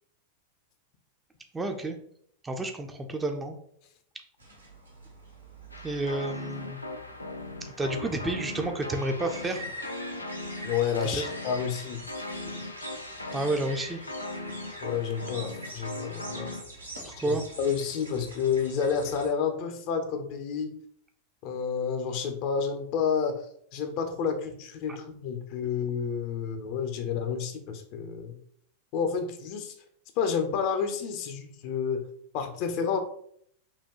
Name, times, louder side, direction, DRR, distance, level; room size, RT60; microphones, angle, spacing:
voice 1, 1.5-2.0 2.4-3.6 5.8-6.8 7.8-9.6 11.1-11.2 13.3-14.0 17.0-17.4, right 2 dB, 15° right, 4 dB, 0.5 m, -30 dB
sound 1, 4.4-19.3, right 1 dB, 80° right, 0.9 m, -45 dB
sound 2, 5.7-16.6, left 2 dB, 85° left, 0.4 m, -39 dB
voice 2, 10.6-12.1 14.8-16.5 17.3-20.7 21.4-23.4 23.7-28.3 28.9-29.7 30.2-32.1 32.3-33.0, left 6 dB, 45° left, 6 dB, 0.6 m, -30 dB
5.4 x 2.3 x 3.0 m, 0.66 s
figure-of-eight pair, 90°, 0 cm